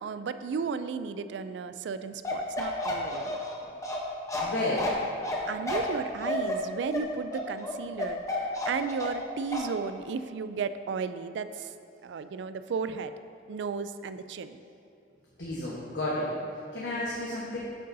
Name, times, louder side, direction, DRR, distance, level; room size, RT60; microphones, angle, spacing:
voice 1, 0.0-3.4 5.5-11.7 12.0-13.2 13.5-14.6, right 5 dB, 70° right, 12 dB, 0.3 m, -34 dB
Bark, 2.2-9.2 9.5-9.7, left 1 dB, 20° left, 0.9 m, -31 dB
voice 2, 4.4-4.9 15.4-16.3 16.7-17.6, left 1 dB, 70° left, -7 dB, 1.2 m, -31 dB
9.2 x 6.6 x 2.7 m, 2.7 s
head